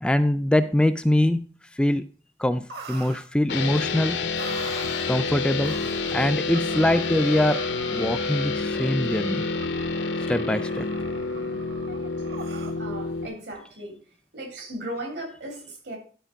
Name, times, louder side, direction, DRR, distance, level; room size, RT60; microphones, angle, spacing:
voice 1, 0.0-1.4 1.8-2.0 2.4-4.2 5.1-5.7 6.1-7.6 7.9-9.4 10.3-10.9, left 1 dB, 5° left, 0.3 m, -23 dB
sound 1, 2.7-3.3 3.7-3.8 4.3-5.2 5.6-6.2 6.5-12.8, right 4 dB, 60° right, 1.3 m, -42 dB
sound 2, 3.5-13.3, left 4 dB, 85° left, 0.9 m, -28 dB
voice 2, 12.8-14.0 14.3-16.0, right 1 dB, 80° right, 3.1 m, -36 dB
11.5 x 4.4 x 5.1 m
head